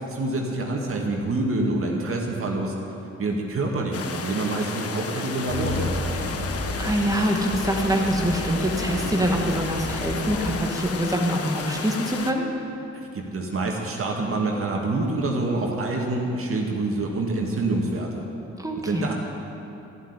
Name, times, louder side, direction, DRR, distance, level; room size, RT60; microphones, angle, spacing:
voice 1, 0.0-2.7 3.2-6.5 12.9-18.3 18.8-19.1, right 2 dB, 45° right, 0 dB, 2.1 m, -27 dB
sound 1, 3.9-12.3, left 5 dB, 50° left, 1.1 m, -33 dB
sound 2, 5.5-10.5, left 1 dB, 80° left, 3.7 m, -31 dB
voice 2, 6.8-12.5 18.6-19.1, right 1 dB, 10° right, 1 dB, 1.8 m, -25 dB
14.0 x 7.7 x 9.8 m, 2.9 s
cardioid pair, 90°, 30 cm